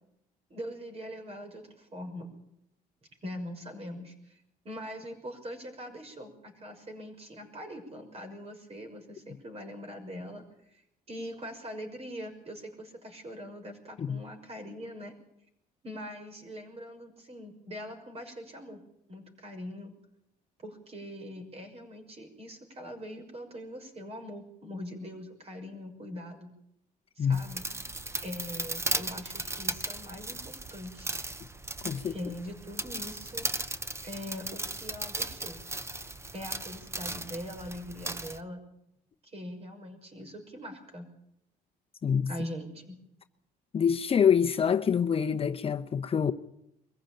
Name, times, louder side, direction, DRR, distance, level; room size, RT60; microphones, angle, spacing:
voice 1, 0.5-2.3 3.2-10.8 11.1-15.1 15.8-18.8 19.1-19.9 20.6-26.6 27.2-27.7 28.2-31.1 32.0-33.5 34.0-35.6 36.3-38.6 39.2-41.1 42.3-43.0, equal, 35° right, 6.2 m, -42 dB
sound 1, 27.3-38.4, right 2 dB, 15° right, 1.0 m, -37 dB
voice 2, 43.7-46.3, left 7 dB, 35° left, 0.8 m, -26 dB
22.5 x 15.5 x 9.0 m
cardioid pair, 110°, 17 cm